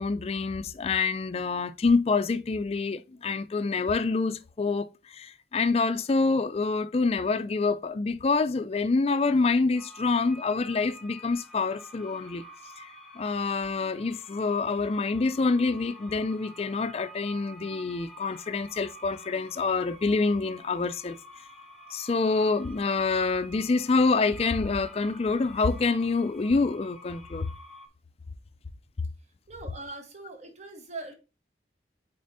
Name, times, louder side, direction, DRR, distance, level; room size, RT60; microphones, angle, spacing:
voice 1, 0.0-12.4 12.8-12.9 13.2-21.2 21.9-27.5, left 4 dB, 35° left, 0.4 m, -26 dB
sound 1, 9.7-27.9, equal, ahead, 1.0 m, -49 dB
voice 2, 29.5-31.1, right 3 dB, 40° right, 1.1 m, -41 dB
8.6 x 4.3 x 2.6 m
head